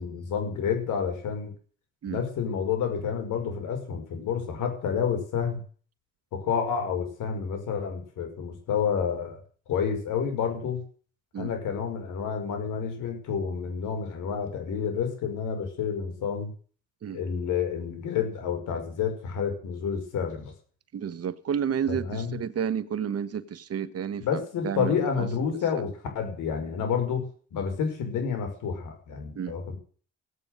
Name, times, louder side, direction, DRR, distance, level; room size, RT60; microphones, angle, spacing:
voice 1, 0.0-1.5 2.1-5.6 6.3-9.4 9.7-10.8 11.4-16.5 17.1-20.5 21.9-22.4 24.2-29.8, left 7 dB, 85° left, 5.7 m, -29 dB
voice 2, 20.9-25.3 25.7-25.8 29.3-29.6, right 8 dB, 55° right, 1.3 m, -31 dB
17.0 x 9.0 x 6.6 m
cardioid pair, 90°, 30 cm